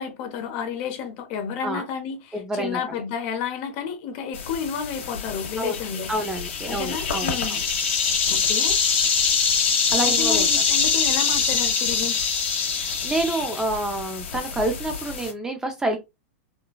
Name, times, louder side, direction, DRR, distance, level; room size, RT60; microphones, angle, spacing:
voice 1, 0.0-6.1 6.7-7.6 8.3-8.8 10.1-12.2, left 7 dB, 45° left, 0.8 m, -31 dB
voice 2, 2.3-3.0 5.6-5.8 6.1-7.6 9.9-10.6 12.8-16.0, right 1 dB, 10° right, 0.4 m, -28 dB
sound 1, 4.3-15.3, left 6 dB, 80° left, 1.2 m, -24 dB
3.9 x 2.3 x 2.2 m
supercardioid pair, 150°, 7 cm